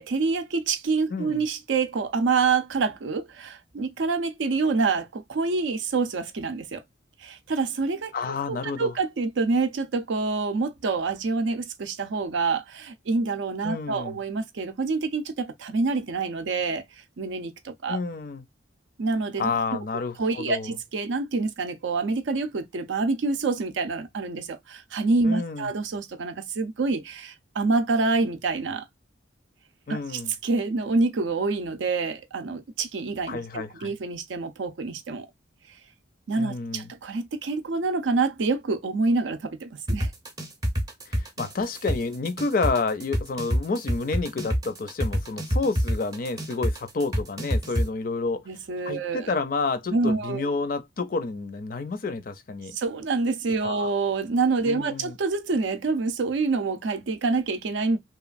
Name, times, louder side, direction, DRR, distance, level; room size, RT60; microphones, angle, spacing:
voice 1, 0.0-6.8 7.2-16.8 17.2-18.0 19.0-19.8 20.2-28.9 29.9-35.3 36.3-40.1 48.5-49.3 49.9-50.4 52.7-58.0, right 4 dB, 70° right, 0.5 m, -27 dB
voice 2, 1.1-1.4 8.1-8.9 13.6-14.2 17.9-18.4 19.4-20.7 25.2-25.7 29.9-30.3 33.3-33.9 36.4-36.9 41.1-48.4 48.9-52.8 53.6-53.9 54.6-55.1, left 4 dB, 45° left, 0.4 m, -30 dB
sound 1, 39.9-47.8, equal, 20° right, 0.6 m, -26 dB
3.0 x 2.3 x 2.4 m
head